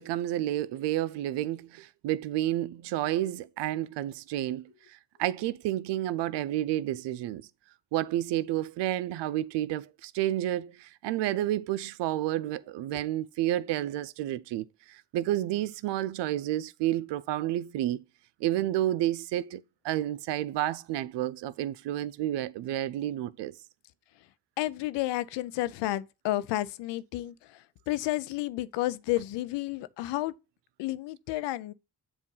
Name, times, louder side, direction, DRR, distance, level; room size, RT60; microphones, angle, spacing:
voice 1, 0.0-7.5 7.9-18.0 18.4-23.5, right 13 dB, 85° right, 0.5 m, -30 dB
voice 2, 24.6-30.3 30.8-31.7, left 16 dB, 90° left, 0.5 m, -31 dB
7.5 x 2.6 x 5.4 m
supercardioid pair, 50°, 41 cm